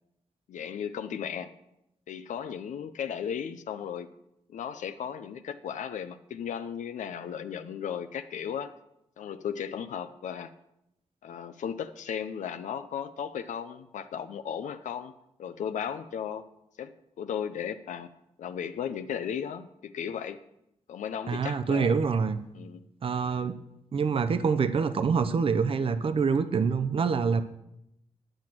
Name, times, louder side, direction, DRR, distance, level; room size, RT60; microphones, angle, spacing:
voice 1, 0.5-1.5 2.1-4.1 4.5-8.7 9.2-10.5 11.2-15.1 15.4-16.5 16.8-18.1 18.4-20.4 20.9-22.0 22.5-22.8, left 8 dB, 85° left, 10 dB, 0.6 m, -35 dB
voice 2, 21.3-22.4 23.0-23.5 23.9-27.4, right 5 dB, 50° right, 10 dB, 0.6 m, -26 dB
10.5 x 6.0 x 7.5 m, 0.83 s
cardioid pair, 100°, 12 cm